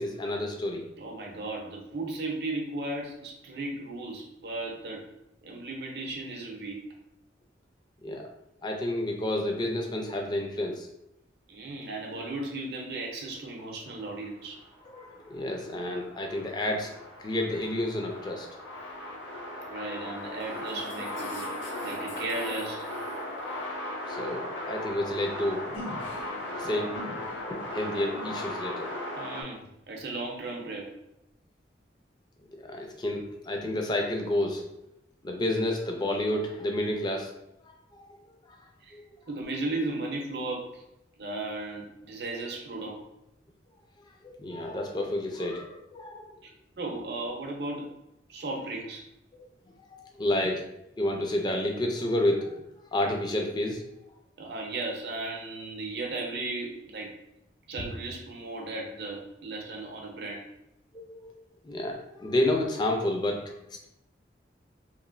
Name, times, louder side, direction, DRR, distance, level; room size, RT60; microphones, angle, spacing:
voice 1, 0.0-0.8 8.0-8.3 8.6-10.9 14.9-16.9 17.2-18.5 24.1-25.6 26.5-26.9 27.5-28.9 32.6-34.6 35.2-37.3 37.7-38.1 38.5-38.6 38.9-39.1 44.2-46.3 50.0-50.7 51.0-52.6 52.9-53.8 58.6-58.7 60.9-61.3 61.6-63.4, left 1 dB, 25° left, 2 dB, 0.4 m, -30 dB
voice 2, 1.0-5.0 5.4-6.8 11.5-14.6 19.7-21.5 21.8-22.9 29.2-30.9 38.8-39.0 39.3-40.8 41.2-43.0 46.4-46.5 46.7-47.9 48.3-49.1 54.4-57.1 57.7-60.5, right 2 dB, 60° right, 0 dB, 0.6 m, -35 dB
sound 1, 14.5-29.4, left 1 dB, 90° left, 0.7 m, -37 dB
3.0 x 2.5 x 2.5 m, 0.82 s
head